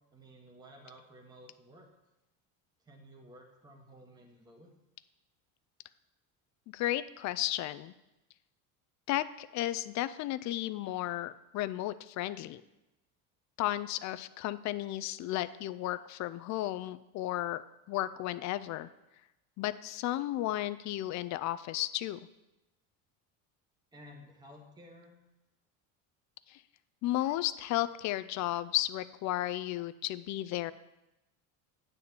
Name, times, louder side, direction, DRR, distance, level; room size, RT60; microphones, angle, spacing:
voice 1, 0.1-1.9 2.8-4.7 23.9-25.2, equal, 10° right, -1 dB, 1.3 m, -54 dB
voice 2, 6.7-7.9 9.1-12.6 13.6-17.6 17.9-18.9 19.6-22.2 26.5-26.6 27.0-30.7, left 15 dB, 45° left, 14 dB, 0.4 m, -34 dB
9.3 x 4.1 x 6.9 m, 0.98 s
supercardioid pair, 125°, 40 cm